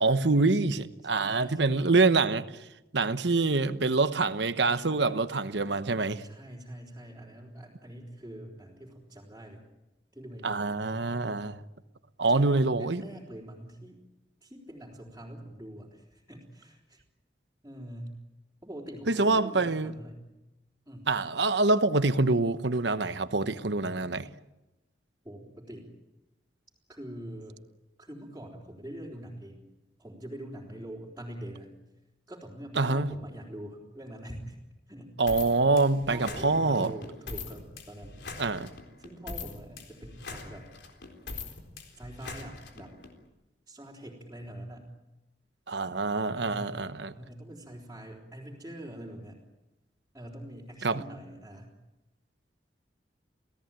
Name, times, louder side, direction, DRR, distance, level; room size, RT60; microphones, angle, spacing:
voice 1, 0.0-2.4 2.9-6.2 10.4-11.6 12.2-13.0 19.1-19.9 21.1-24.3 32.8-33.1 35.2-36.9 38.4-38.7 45.7-47.1 50.8-51.0, right 3 dB, 70° right, 1.1 m, -25 dB
voice 2, 1.0-1.9 6.2-9.6 10.1-10.8 12.3-14.0 14.4-17.0 17.6-18.2 18.6-20.3 20.9-21.1 25.2-25.9 26.9-27.6 28.0-29.6 30.0-31.7 32.3-34.6 34.9-35.2 35.5-35.7 36.1-38.2 39.0-40.7 41.9-43.0 43.7-44.9 46.3-46.9 47.1-49.4 50.1-51.8, right 1 dB, 15° right, 4.0 m, -44 dB
sound 1, 35.3-43.1, left 4 dB, 70° left, 4.0 m, -42 dB
28.5 x 17.5 x 9.0 m
head